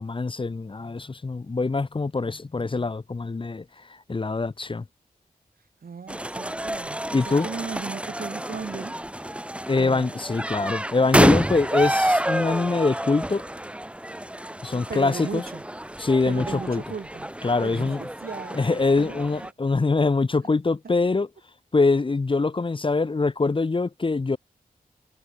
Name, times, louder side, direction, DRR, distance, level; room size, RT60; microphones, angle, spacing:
voice 1, 0.0-3.6 4.1-4.8 7.1-7.5 9.7-13.4 14.6-15.4 16.0-16.8 17.4-18.0 18.5-21.3 21.7-24.4, left 3 dB, 35° left, 1.0 m, -24 dB
voice 2, 5.8-9.0 9.8-10.1 14.7-15.6 16.2-19.5 20.8-20.9, right 5 dB, 75° right, 3.5 m, -37 dB
sound 1, 6.1-19.5, right 1 dB, 5° right, 1.6 m, -28 dB
wide cardioid pair, 105°, 15 cm